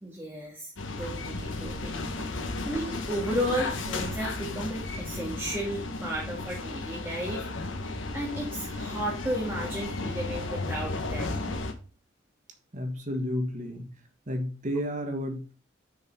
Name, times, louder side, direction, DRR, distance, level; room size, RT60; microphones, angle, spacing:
voice 1, 0.0-0.7 1.0-7.4 8.1-11.4, equal, 10° right, -3 dB, 1.9 m, -34 dB
sound 1, 0.8-11.7, left 2 dB, 80° left, 1.3 m, -34 dB
voice 2, 12.7-13.9 14.3-15.5, equal, 40° right, 5 dB, 1.5 m, -31 dB
6.5 x 5.7 x 5.3 m, 0.36 s
head